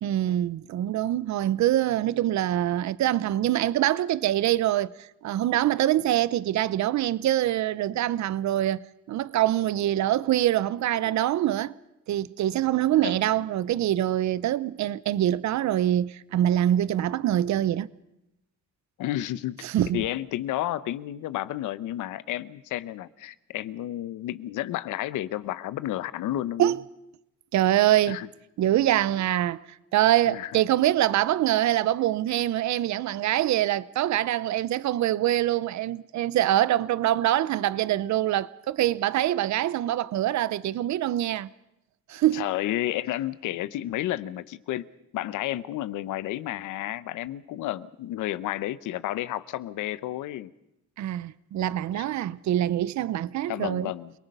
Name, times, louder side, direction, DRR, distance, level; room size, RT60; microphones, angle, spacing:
voice 1, 0.0-11.7 12.1-17.9 19.6-20.0 26.6-26.8 27.5-28.2 28.6-29.6 29.9-41.5 42.1-42.5 51.0-53.9, right 13 dB, 65° right, 0.7 m, -24 dB
voice 2, 19.0-26.7 28.1-28.3 30.3-30.5 42.3-44.9 45.1-50.5 51.9-52.0 53.5-54.1, left 14 dB, 90° left, 0.9 m, -31 dB
29.0 x 19.0 x 5.5 m
cardioid pair, 90°, 30 cm